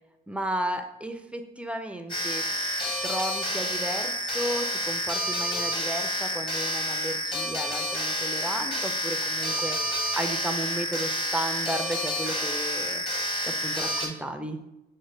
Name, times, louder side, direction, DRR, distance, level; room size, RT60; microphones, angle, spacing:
voice 1, 0.3-2.4 3.0-13.0 13.4-14.6, right 1 dB, 5° right, 6 dB, 0.4 m, -34 dB
sound 1, 2.1-14.1, equal, 25° left, 1.0 m, -29 dB
6.3 x 2.1 x 3.1 m, 0.91 s
cardioid pair, 90°, 20 cm